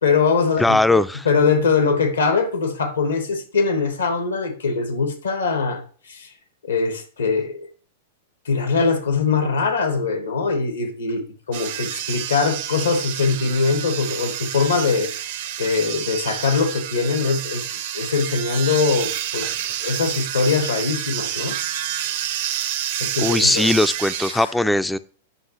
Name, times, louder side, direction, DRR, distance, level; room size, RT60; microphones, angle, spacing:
voice 1, 0.0-5.8 6.1-6.3 6.6-7.7 8.4-15.1 15.6-17.6 17.9-19.5 19.8-21.6 22.0-22.5 23.0-23.7 24.3-24.5, left 4 dB, 85° left, 8 dB, 1.3 m, -22 dB
voice 2, 0.6-1.3 19.4-19.6 23.2-25.0, left 2 dB, 5° left, 14 dB, 0.3 m, -19 dB
sound 1, 11.5-24.3, right 11 dB, 65° right, 0.7 m, -29 dB
9.8 x 5.5 x 3.0 m, 0.42 s
hypercardioid pair, 105°, 0 cm